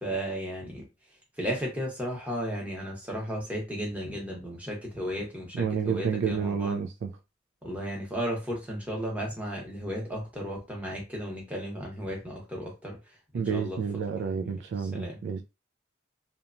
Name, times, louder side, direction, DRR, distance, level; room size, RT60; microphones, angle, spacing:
voice 1, 0.0-0.9 1.4-6.8 7.6-13.8 14.4-15.2, equal, 5° right, 0.9 m, -34 dB
voice 2, 5.5-7.1 13.3-15.4, right 6 dB, 60° right, 0.3 m, -30 dB
2.8 x 2.2 x 2.5 m
head